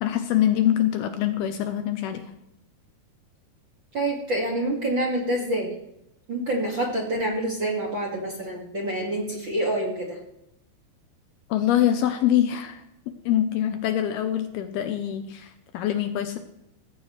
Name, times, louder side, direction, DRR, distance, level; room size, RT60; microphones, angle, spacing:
voice 1, 0.0-2.3 11.5-16.4, left 11 dB, 75° left, 8 dB, 2.5 m, -24 dB
voice 2, 3.9-5.7 6.3-10.2, right 1 dB, 40° right, -1 dB, 1.9 m, -27 dB
18.0 x 15.0 x 3.2 m, 0.83 s
omnidirectional pair, 5.0 m